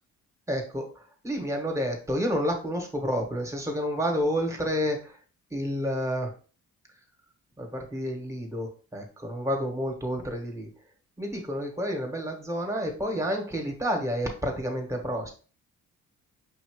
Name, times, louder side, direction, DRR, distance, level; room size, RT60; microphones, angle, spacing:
voice 1, 0.5-5.2 5.5-6.3 7.6-10.7 11.2-15.3, equal, 10° right, 2 dB, 1.4 m, -30 dB
5.4 x 2.8 x 3.1 m, 0.39 s
cardioid pair, 90°, 30 cm